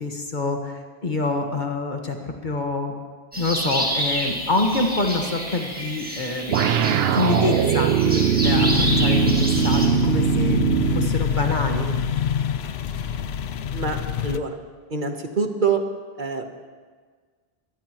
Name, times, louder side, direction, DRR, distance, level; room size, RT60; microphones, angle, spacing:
voice 1, 0.0-2.9 3.4-6.6 7.1-11.9, left 2 dB, 50° left, 3 dB, 1.7 m, -26 dB
sound 1, 3.3-9.9, equal, 10° right, 2.3 m, -29 dB
sound 2, 6.5-11.2, right 9 dB, 75° right, 0.9 m, -21 dB
sound 3, 8.4-14.4, left 8 dB, 85° left, 0.9 m, -25 dB
voice 2, 13.7-14.6 14.9-15.8 16.2-16.5, right 5 dB, 50° right, 5 dB, 1.3 m, -25 dB
24.0 x 18.5 x 3.1 m, 1.6 s
omnidirectional pair, 1.0 m